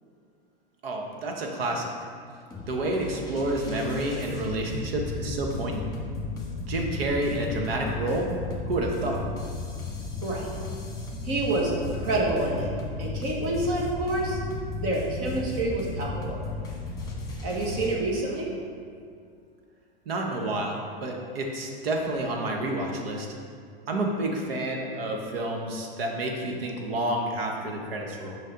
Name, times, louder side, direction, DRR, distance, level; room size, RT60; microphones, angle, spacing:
voice 1, 0.8-1.9 2.7-5.8 6.7-8.3 8.7-9.2 20.1-23.3 23.9-28.4, right 1 dB, 80° right, 1 dB, 1.1 m, -29 dB
sound 1, 2.5-18.0, left 3 dB, 15° left, 1.4 m, -35 dB
voice 2, 11.2-12.7 13.0-14.4 14.8-16.4 17.4-18.5, right 2 dB, 50° right, -2 dB, 1.6 m, -28 dB
6.5 x 5.2 x 3.9 m, 2.2 s
hypercardioid pair, 100°, 29 cm